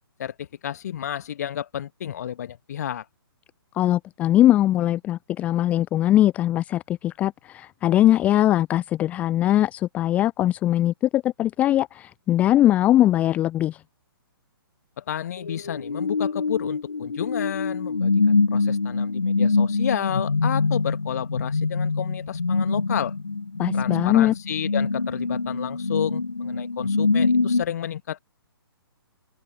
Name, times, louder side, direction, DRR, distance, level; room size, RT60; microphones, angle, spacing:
voice 1, 0.2-3.1 15.0-23.1 23.7-28.2, left 10 dB, 45° left, 1.8 m, -31 dB
voice 2, 3.7-13.8 23.6-24.3, left 13 dB, 10° left, 0.4 m, -21 dB
sound 1, 15.4-27.6, left 4 dB, 70° left, 2.3 m, -24 dB
open air
figure-of-eight pair, 130°, 13 cm